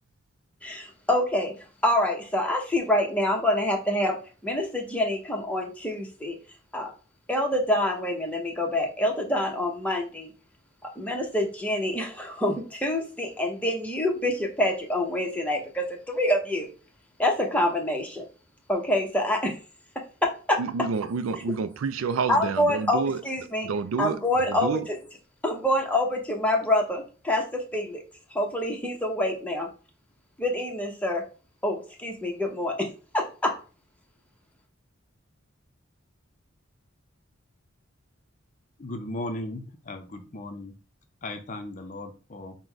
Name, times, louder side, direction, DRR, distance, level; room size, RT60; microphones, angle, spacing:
voice 1, 0.6-1.5 1.8-6.4 6.7-6.9 7.3-10.3 11.0-16.7 17.2-18.2 18.7-19.6 20.2-20.6 22.3-23.7 24.0-24.8 25.4-28.0 28.3-29.7 30.4-31.2 31.6-32.9 33.1-33.6, left 1 dB, 5° left, 0.8 m, -26 dB
voice 2, 20.6-23.2 23.6-24.9, right 5 dB, 80° right, 0.4 m, -29 dB
voice 3, 38.8-40.7 41.2-42.6, left 1 dB, 40° left, 0.6 m, -36 dB
3.8 x 2.1 x 4.5 m
head